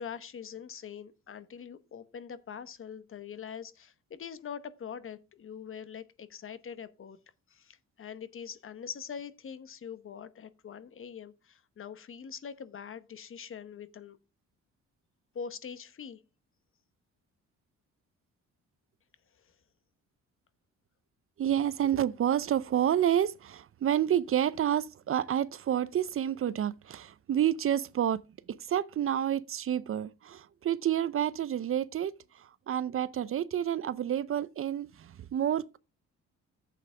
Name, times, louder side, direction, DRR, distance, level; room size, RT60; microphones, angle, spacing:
voice 1, 0.0-7.2 7.5-14.2 15.3-16.2 19.4-19.5, left 7 dB, 45° left, 1.0 m, -43 dB
voice 2, 21.4-28.2 28.5-35.8, right 10 dB, 45° right, 0.5 m, -29 dB
10.5 x 7.7 x 3.3 m
cardioid pair, 90°, 30 cm